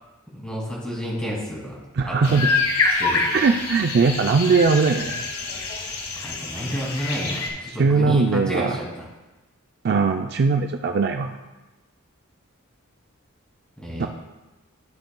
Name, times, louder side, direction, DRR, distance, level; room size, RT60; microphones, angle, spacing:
voice 1, 0.3-1.8 2.1-2.5 3.0-3.2 6.2-9.1 13.8-14.1, equal, 5° left, -5 dB, 2.4 m, -30 dB
voice 2, 1.9-2.5 3.3-5.2 7.7-8.8 9.8-11.3 14.0-14.1, right 4 dB, 50° right, 5 dB, 0.3 m, -20 dB
sound 1, 2.2-7.5, left 3 dB, 80° left, 1.8 m, -26 dB
13.0 x 7.8 x 2.2 m, 1.1 s
head